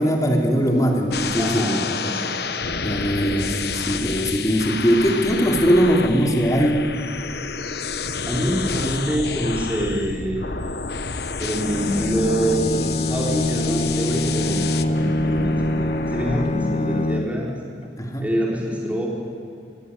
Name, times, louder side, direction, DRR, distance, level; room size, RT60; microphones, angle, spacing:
voice 1, 0.0-1.8 2.8-6.8 18.0-18.3, equal, 20° left, 1 dB, 3.0 m, -20 dB
sound 1, 1.1-16.4, left 5 dB, 60° left, 1.0 m, -29 dB
voice 2, 1.4-2.7 8.3-10.4 11.4-17.5 18.2-19.1, equal, 10° right, -3 dB, 4.5 m, -25 dB
Bowed string instrument, 11.6-17.6, left 1 dB, 35° left, 0.6 m, -25 dB
23.5 x 18.5 x 9.5 m, 2.4 s
head